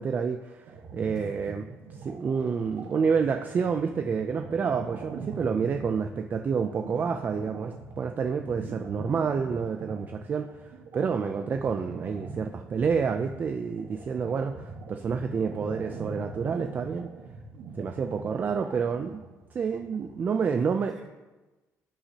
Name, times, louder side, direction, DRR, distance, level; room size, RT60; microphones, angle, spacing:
voice 1, 0.0-1.6 2.0-17.1 17.8-19.2 19.5-20.9, right 6 dB, 35° right, 6 dB, 0.3 m, -29 dB
sound 1, 0.7-20.5, right 3 dB, 90° right, 1.3 m, -43 dB
voice 2, 1.1-1.7 19.6-19.7 20.4-21.1, right 1 dB, 5° right, -6 dB, 2.9 m, -48 dB
14.5 x 5.9 x 2.8 m, 1.2 s
cardioid pair, 160°, 6 cm